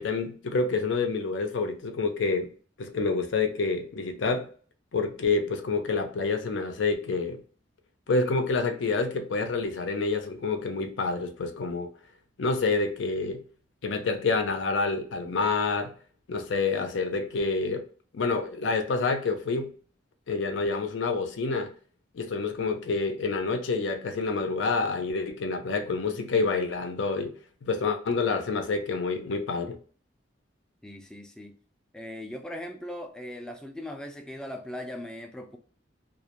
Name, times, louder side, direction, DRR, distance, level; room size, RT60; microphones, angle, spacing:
voice 1, 0.0-2.5 2.8-4.5 4.9-7.4 8.1-11.9 12.4-13.4 13.8-15.9 16.3-17.9 18.1-19.7 20.3-21.7 22.1-27.3 27.6-29.8, left 4 dB, 80° left, 0.5 m, -28 dB
voice 2, 30.8-31.6 31.9-35.6, left 1 dB, 5° left, 0.3 m, -39 dB
2.3 x 2.1 x 2.8 m
head